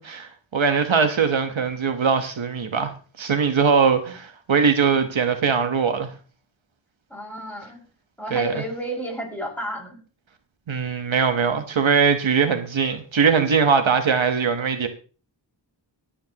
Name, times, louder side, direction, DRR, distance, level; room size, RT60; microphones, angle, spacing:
voice 1, 0.0-6.1 8.3-8.6 10.7-14.9, right 5 dB, 90° right, 1.2 m, -21 dB
voice 2, 7.1-7.8 8.2-10.0, equal, 5° left, 5.7 m, -31 dB
23.0 x 8.7 x 2.9 m
wide cardioid pair, 55°, 45 cm